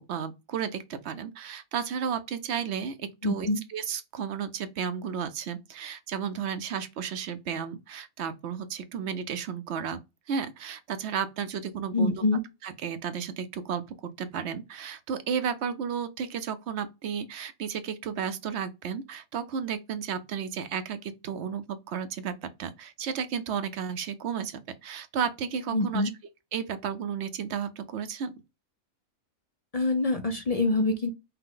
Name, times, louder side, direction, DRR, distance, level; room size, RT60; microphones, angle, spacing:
voice 1, 0.0-10.0 10.3-12.1 12.6-26.1 26.5-28.3, right 7 dB, 60° right, 0.8 m, -33 dB
voice 2, 3.2-3.6 11.9-12.4 25.7-26.1 29.7-31.1, left 2 dB, 50° left, 0.4 m, -25 dB
5.7 x 2.1 x 3.7 m
omnidirectional pair, 1.5 m